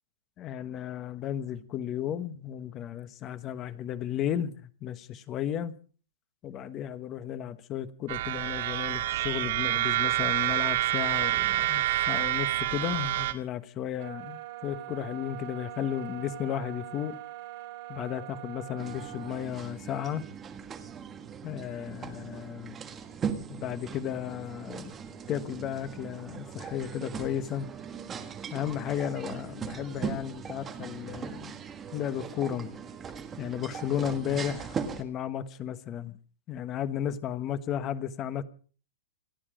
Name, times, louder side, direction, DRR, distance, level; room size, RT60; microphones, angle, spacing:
voice 1, 0.4-5.7 6.4-17.2 17.9-20.2 21.4-22.9 23.5-25.0 25.3-27.7 28.5-31.6 31.9-32.7 33.4-36.2 36.5-38.4, left 10 dB, 20° left, 1.2 m, -34 dB
sound 1, 8.1-13.3, right 15 dB, 55° right, 2.1 m, -27 dB
sound 2, 14.0-19.5, right 15 dB, 40° right, 3.4 m, -43 dB
sound 3, 18.8-35.0, right 6 dB, 15° right, 1.5 m, -39 dB
28.0 x 9.8 x 5.0 m
supercardioid pair, 165°, 0 cm